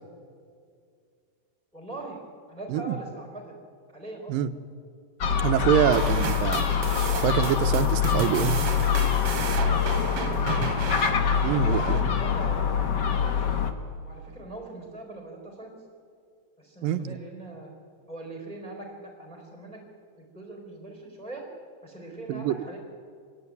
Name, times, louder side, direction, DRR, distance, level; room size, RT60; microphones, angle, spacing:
voice 1, 1.7-2.2 2.5-3.6 3.9-4.4 5.6-6.2 10.0-10.7 11.3-13.4 14.0-15.8 16.6-17.7 18.1-19.8 20.2-21.5 21.8-22.8, right 2 dB, ahead, 2 dB, 3.6 m, -41 dB
Gull seagull, 5.2-13.7, left 7 dB, 85° left, 0.9 m, -25 dB
voice 2, 5.4-6.6 7.2-8.6 11.4-12.1 16.8-17.2 22.3-22.5, right 10 dB, 75° right, 10 dB, 2.5 m, -25 dB
sound 1, 5.9-12.5, right 5 dB, 45° right, 2.7 m, -34 dB
25.5 x 21.5 x 9.6 m, 2.3 s
omnidirectional pair, 4.1 m